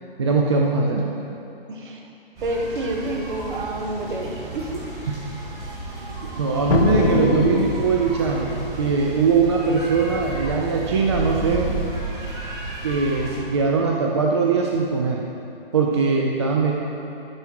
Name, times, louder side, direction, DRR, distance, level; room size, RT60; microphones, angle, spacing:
voice 1, 0.2-1.0 5.1-5.2 6.4-11.9 12.8-15.2 15.7-16.7, right 4 dB, 30° right, -1 dB, 0.4 m, -21 dB
voice 2, 1.7-2.0 2.4-4.8 5.9-6.1 6.9-7.2, right 1 dB, 55° right, 1 dB, 1.3 m, -29 dB
sound 1, 2.4-13.4, right 2 dB, 10° right, 1.3 m, -32 dB
sound 2, 6.7-8.4, left 7 dB, 70° left, 0.5 m, -23 dB
12.5 x 4.9 x 4.6 m, 2.8 s
hypercardioid pair, 150°, 31 cm